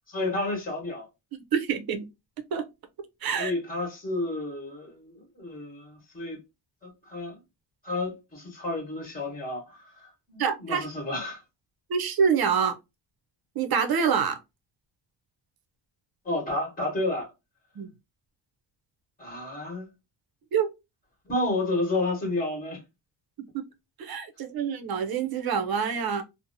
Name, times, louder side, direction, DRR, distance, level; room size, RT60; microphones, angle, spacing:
voice 1, 0.1-1.0 3.4-6.4 6.8-7.4 7.8-11.4 16.2-17.3 19.2-19.9 21.3-22.8, left 2 dB, 20° left, 1.3 m, -31 dB
voice 2, 1.5-2.0 2.5-2.6 3.2-3.5 10.4-10.9 11.9-12.8 13.6-14.4 17.8-17.9 20.5-20.7 24.0-26.2, right 6 dB, 55° right, 0.6 m, -26 dB
2.7 x 2.1 x 2.6 m
cardioid pair, 145°, 44 cm